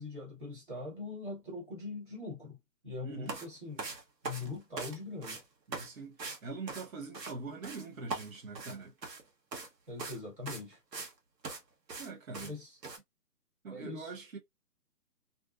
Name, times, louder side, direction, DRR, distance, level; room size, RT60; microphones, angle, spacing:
voice 1, 0.0-2.6 2.8-3.9 4.2-5.4 9.9-10.8 12.4-12.8 13.7-14.1, left 3 dB, 30° right, 1.2 m, -42 dB
voice 2, 3.0-3.4 5.7-8.9 12.0-12.5 13.6-14.4, right 3 dB, 55° right, 0.8 m, -43 dB
sound 1, 3.3-3.5 3.8-5.0 5.2-5.4 5.7-5.9 6.2-6.4 6.7-7.3 7.6-9.2 9.5-9.7 10.0-10.2 10.5-11.1 11.4-11.6 11.9-12.1 12.3-12.5 12.8-13.0, right 4 dB, 85° right, 1.0 m, -40 dB
2.5 x 2.3 x 2.2 m
hypercardioid pair, 170°, 48 cm